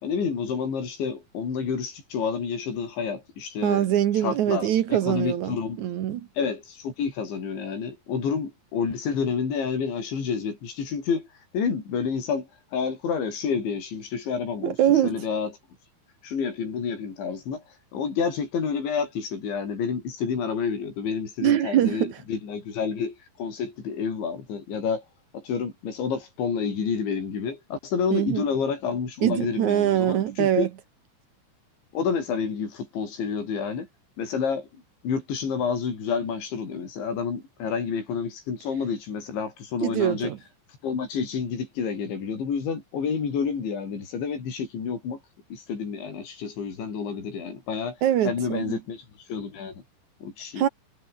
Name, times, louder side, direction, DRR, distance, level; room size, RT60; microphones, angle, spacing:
voice 1, 0.0-3.8 4.2-5.8 6.4-11.2 11.5-14.8 15.0-15.5 16.2-17.6 17.9-25.0 25.3-30.7 31.9-33.9 34.2-34.7 35.0-40.3 40.8-45.2 45.5-48.0 48.2-49.8 50.2-50.7, left 6 dB, 70° left, 8.0 m, -29 dB
voice 2, 3.6-6.3 14.6-15.2 21.4-22.2 28.1-28.4 29.2-30.7 39.8-40.4 48.0-48.8 50.6-50.7, right 11 dB, 90° right, 1.6 m, -23 dB
omnidirectional pair, 5.5 m